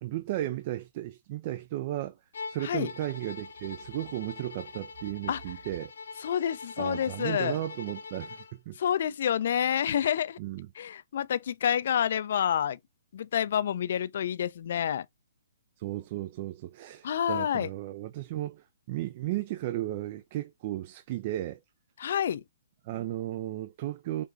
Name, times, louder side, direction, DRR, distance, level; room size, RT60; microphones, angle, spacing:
voice 1, 0.0-2.2 2.5-5.9 6.8-8.8 10.4-10.7 15.8-21.6 22.8-24.2, right 14 dB, 40° right, 0.4 m, -35 dB
Bowed string instrument, 2.3-8.6, left 4 dB, 75° left, 0.8 m, -43 dB
voice 2, 6.2-7.6 8.8-10.4 10.8-12.8 13.1-15.1 17.0-17.7 22.0-22.4, left 9 dB, 60° left, 0.3 m, -28 dB
5.0 x 2.3 x 2.4 m
hypercardioid pair, 140°, 0 cm